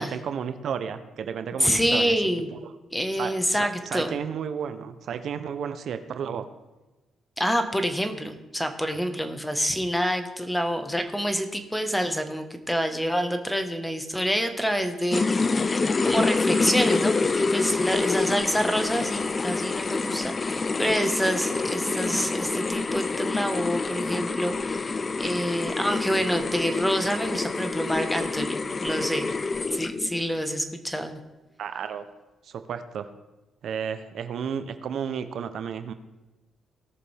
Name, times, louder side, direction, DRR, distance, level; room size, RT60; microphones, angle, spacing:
voice 1, 0.0-2.1 3.2-6.5 31.6-32.1 32.4-33.1 33.6-35.9, right 7 dB, 65° right, 10 dB, 0.7 m, -32 dB
voice 2, 1.6-2.5 2.9-4.2 7.4-29.3 29.7-31.1, equal, 5° left, 7 dB, 1.2 m, -27 dB
sound 1, 15.1-30.2, left 4 dB, 30° left, 0.4 m, -27 dB
17.5 x 6.8 x 3.4 m, 1.1 s
cardioid pair, 90°, 0 cm